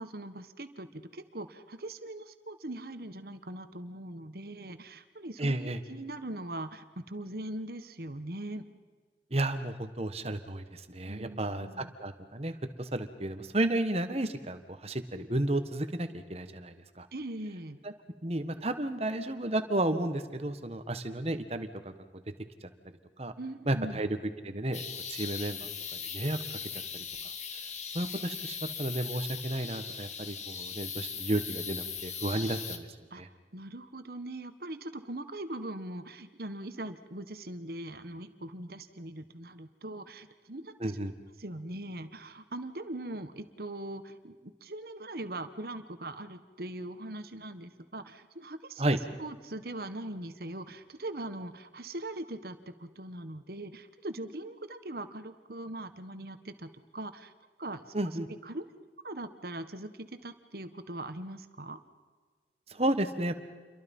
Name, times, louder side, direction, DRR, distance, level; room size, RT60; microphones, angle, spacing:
voice 1, 0.0-8.6 11.1-11.9 17.1-17.8 23.4-24.0 33.1-33.2 33.5-41.1 41.4-57.3 57.6-57.9 58.4-58.6 59.0-61.8, right 1 dB, 55° right, 10 dB, 1.5 m, -41 dB
voice 2, 5.4-5.8 9.3-17.1 17.8-17.9 18.2-21.9 22.6-22.7 23.2-23.3 23.6-24.2 24.4-24.8 25.1-25.7 26.0-26.4 26.9-27.0 27.5-27.7 27.9-32.9 33.1-33.3 40.8-41.1 48.8-49.0 57.9-58.3 62.7-63.3, right 1 dB, 35° right, 9 dB, 1.6 m, -32 dB
sound 1, 24.7-32.8, left 6 dB, 40° left, 1.9 m, -39 dB
29.0 x 23.0 x 5.6 m, 1.5 s
head